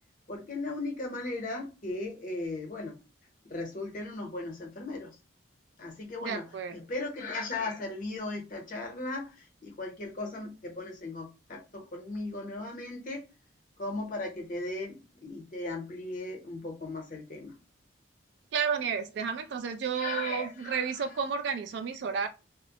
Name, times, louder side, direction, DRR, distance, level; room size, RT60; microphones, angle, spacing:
voice 1, 0.3-3.0 3.4-5.2 5.8-13.2 13.8-17.5 19.9-21.0, left 2 dB, 40° left, 0.7 m, -37 dB
voice 2, 6.2-6.8 18.5-22.3, right 6 dB, 60° right, 0.3 m, -32 dB
2.4 x 2.0 x 2.8 m
head